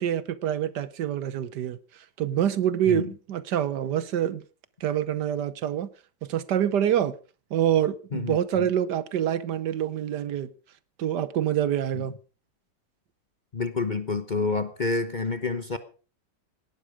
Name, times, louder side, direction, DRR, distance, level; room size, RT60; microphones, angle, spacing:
voice 1, 0.0-1.8 2.2-4.4 4.8-5.9 6.2-7.1 7.5-10.5 11.0-12.2, right 10 dB, 75° right, 1.5 m, -26 dB
voice 2, 8.1-8.7 11.9-12.0 13.5-15.8, left 3 dB, 35° left, 0.9 m, -28 dB
18.0 x 12.5 x 4.9 m
omnidirectional pair, 1.9 m